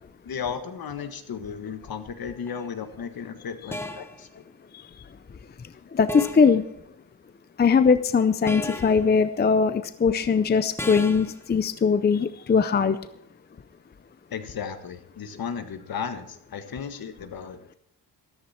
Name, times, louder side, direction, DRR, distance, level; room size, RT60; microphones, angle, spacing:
voice 1, 0.2-4.4 14.3-17.7, left 7 dB, 65° left, 8 dB, 1.6 m, -35 dB
sound 1, 2.5-2.7 3.7-4.2 6.1-6.6 8.5-9.1 10.8-11.4, left 1 dB, 5° left, 1.0 m, -34 dB
voice 2, 5.9-6.6 7.6-13.0, left 5 dB, 25° left, 12 dB, 0.5 m, -21 dB
14.0 x 13.5 x 4.4 m, 0.75 s
wide cardioid pair, 145°, 39 cm